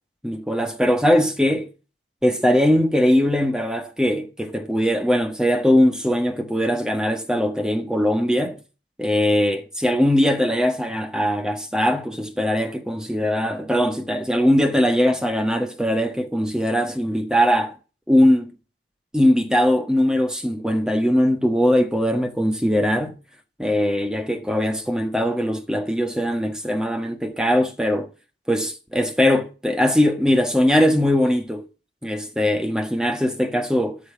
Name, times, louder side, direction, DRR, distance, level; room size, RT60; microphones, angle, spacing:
voice 1, 0.2-1.7 2.2-8.6 9.0-17.8 18.1-18.6 19.1-23.2 23.6-28.1 28.5-31.6 32.0-34.0, equal, 5° right, 1.6 m, -20 dB
13.5 x 6.2 x 5.9 m
head